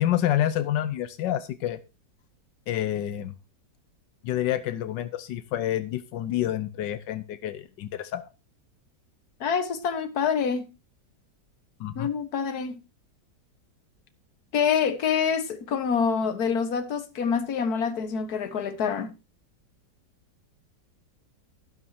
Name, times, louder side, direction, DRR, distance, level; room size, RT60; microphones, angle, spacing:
voice 1, 0.0-1.8 2.7-3.3 4.2-8.3 11.8-12.1, left 12 dB, 85° left, 1.4 m, -28 dB
voice 2, 9.4-10.7 12.0-12.8 14.5-19.1, left 6 dB, 60° left, 1.8 m, -26 dB
12.5 x 12.0 x 2.8 m
omnidirectional pair, 1.9 m